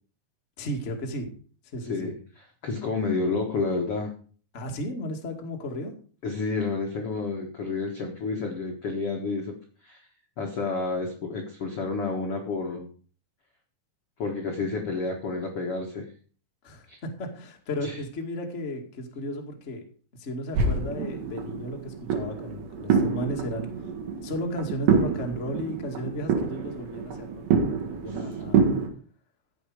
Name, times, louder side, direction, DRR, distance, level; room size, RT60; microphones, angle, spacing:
voice 1, 0.6-1.3 1.7-2.1 4.5-5.9 16.6-19.8 20.2-23.7 24.2-27.4 27.8-28.6, equal, 40° left, 2 dB, 1.0 m, -34 dB
voice 2, 2.6-4.1 6.2-9.5 9.8-10.0 10.4-12.9 14.2-16.1 16.9-17.0 17.8-18.0 28.1-28.2, left 3 dB, 70° left, 1 dB, 1.3 m, -30 dB
sound 1, 20.5-28.9, right 5 dB, 70° right, 4.0 m, -27 dB
15.0 x 8.3 x 5.0 m, 0.42 s
omnidirectional pair, 5.4 m